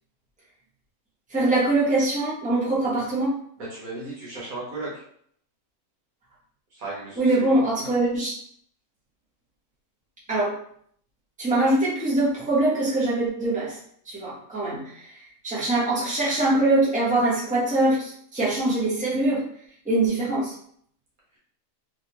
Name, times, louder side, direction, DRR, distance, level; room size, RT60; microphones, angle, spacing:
voice 1, 1.3-3.3 7.2-8.3 10.3-10.6 11.4-13.8 14.1-15.0 15.4-19.4 19.8-20.5, right 2 dB, 5° right, -8 dB, 1.2 m, -23 dB
voice 2, 3.6-5.0 6.7-7.6, right 2 dB, 65° right, -6 dB, 1.7 m, -35 dB
3.4 x 2.9 x 3.0 m, 0.64 s
omnidirectional pair, 1.6 m